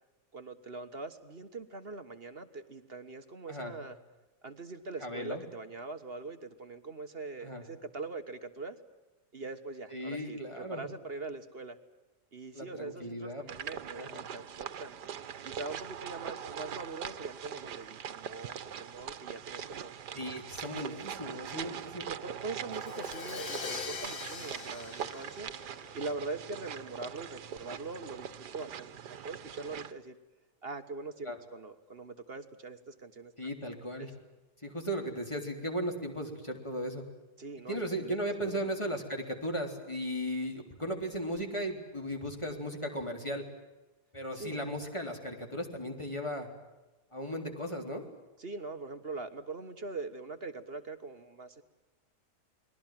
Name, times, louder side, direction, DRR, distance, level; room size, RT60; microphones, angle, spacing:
voice 1, 0.3-4.0 4.4-8.8 9.3-11.8 12.3-15.0 15.4-19.9 21.5-21.6 22.0-25.5 25.9-28.9 29.2-30.2 30.6-33.3 34.0-34.1 37.4-38.7 44.3-44.7 48.4-51.6, right 3 dB, 40° right, 9 dB, 1.6 m, -42 dB
voice 2, 5.0-5.4 7.4-7.7 9.9-10.9 12.5-13.4 13.9-14.2 20.1-22.0 31.2-31.4 33.4-34.1 34.6-37.0 37.7-43.4 44.1-46.5 47.1-48.0, equal, 15° left, 3 dB, 3.8 m, -36 dB
sound 1, 13.5-29.9, right 8 dB, 90° right, 1.7 m, -42 dB
Crash cymbal, 22.7-26.5, left 5 dB, 70° left, 2.2 m, -42 dB
30.0 x 21.5 x 7.6 m, 1.1 s
omnidirectional pair, 1.7 m